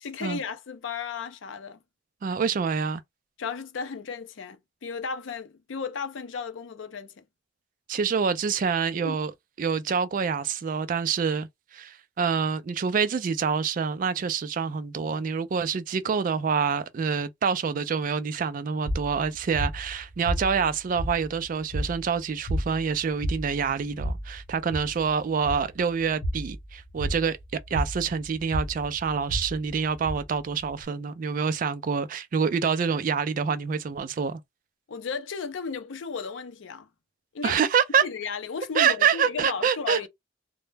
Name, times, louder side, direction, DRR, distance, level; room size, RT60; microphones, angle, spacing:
voice 1, 0.0-1.8 3.4-7.2 9.0-9.2 34.9-36.9 37.3-37.6 38.0-40.1, left 5 dB, 75° left, 0.5 m, -34 dB
voice 2, 2.2-3.0 7.9-9.3 9.6-27.4 27.7-34.4 37.4-38.1 38.7-40.1, right 6 dB, 45° right, 0.3 m, -26 dB
sound 1, 18.8-30.8, equal, 50° left, 0.9 m, -33 dB
2.1 x 2.0 x 3.2 m
head